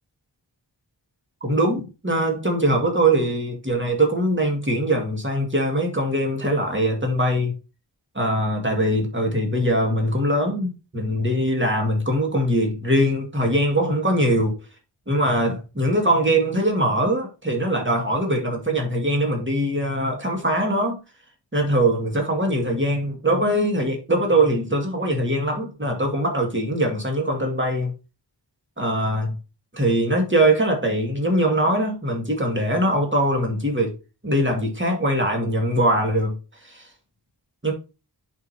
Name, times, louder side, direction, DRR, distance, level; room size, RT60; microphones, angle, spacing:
voice 1, 1.4-7.5 8.1-14.6 15.1-21.0 21.5-27.9 28.8-29.4 29.7-33.9 34.2-36.4 36.6-36.9 37.6-37.7, right 1 dB, 25° right, 2.3 m, -22 dB
10.5 x 5.0 x 2.9 m
wide cardioid pair, 40°, 43 cm